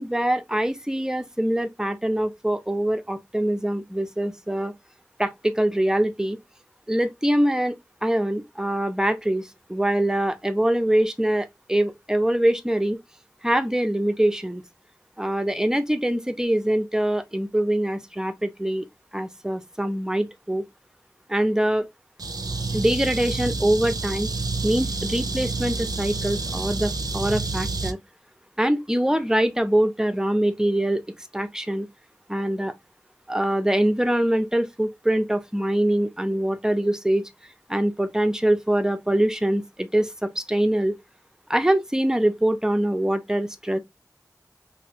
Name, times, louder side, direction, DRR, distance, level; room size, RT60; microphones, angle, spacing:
voice 1, 0.0-4.7 5.2-6.4 6.9-13.0 13.4-14.6 15.2-18.9 19.1-20.6 21.3-21.9 22.7-24.3 24.6-28.0 28.6-31.9 32.3-32.7 33.3-37.3 37.7-41.0 41.5-43.8, right 1 dB, 10° right, 0.6 m, -24 dB
sound 1, 22.2-27.9, right 3 dB, 65° right, 0.5 m, -29 dB
3.0 x 2.6 x 2.8 m
wide cardioid pair, 40°, 7 cm